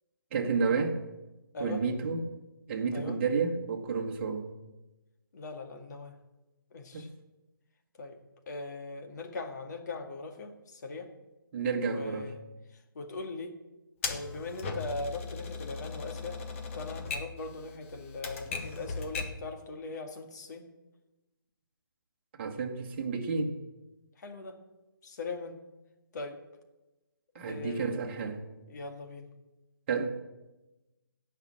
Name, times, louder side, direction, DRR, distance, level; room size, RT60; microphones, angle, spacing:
voice 1, 0.3-1.0 1.6-2.3 2.7-4.5 6.9-7.1 11.5-12.3 22.4-23.6 27.3-28.4 29.9-30.1, right 5 dB, 35° right, 2 dB, 1.6 m, -31 dB
voice 2, 5.3-6.2 6.7-7.1 8.0-8.2 8.5-11.1 11.9-12.4 12.9-13.6 14.1-16.4 16.8-20.7 24.2-24.6 25.0-25.6 26.1-26.4 27.5-28.0 28.7-29.3, left 3 dB, 50° left, 3 dB, 2.1 m, -40 dB
Typewriter, 14.0-19.5, left 4 dB, 35° left, 1.5 m, -38 dB
17.0 x 5.8 x 7.6 m, 1.0 s
hypercardioid pair, 155°, 12 cm